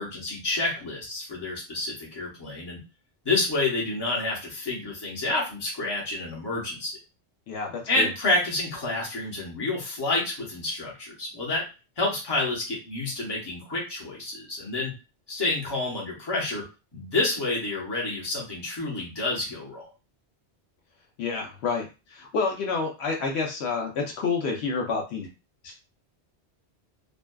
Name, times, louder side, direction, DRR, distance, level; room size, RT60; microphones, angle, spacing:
voice 1, 0.0-2.8 3.2-6.9 7.9-11.6 12.0-14.9 15.3-16.6 16.9-19.9, left 2 dB, 25° left, -4 dB, 0.8 m, -29 dB
voice 2, 7.5-8.1 21.2-25.3 25.6-25.8, left 4 dB, 75° left, 1 dB, 0.8 m, -29 dB
2.5 x 2.3 x 2.2 m, 0.29 s
omnidirectional pair, 1.1 m